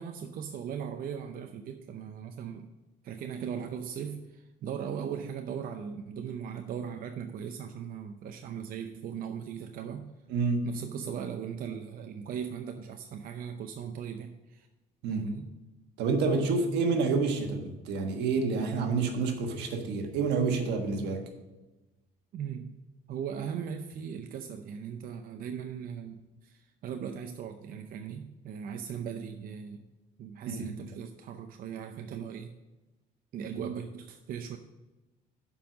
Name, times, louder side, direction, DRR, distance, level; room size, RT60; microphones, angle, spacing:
voice 1, 0.0-2.7 3.0-10.1 10.6-14.7 15.1-15.5 22.3-22.8 23.1-29.8 30.2-32.5 33.3-34.6, right 7 dB, 60° right, 6 dB, 0.6 m, -38 dB
voice 2, 10.3-10.7 15.0-15.3 16.0-21.2 30.5-30.8 33.5-33.6, right 4 dB, 85° right, 4 dB, 1.4 m, -28 dB
7.3 x 5.5 x 6.2 m, 1.1 s
cardioid pair, 110°, 17 cm